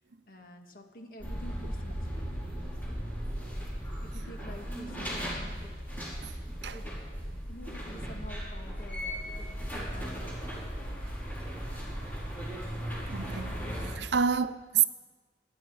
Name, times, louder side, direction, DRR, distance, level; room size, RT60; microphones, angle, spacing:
voice 1, 0.3-3.2 4.0-5.7 6.7-6.9 7.5-11.3, left 1 dB, 50° left, 1.7 m, -49 dB
sound 1, 1.2-13.9, equal, 10° left, 4.1 m, -37 dB
voice 2, 13.1-13.6 14.0-14.8, right 7 dB, 80° right, 0.6 m, -28 dB
23.5 x 10.5 x 4.7 m
head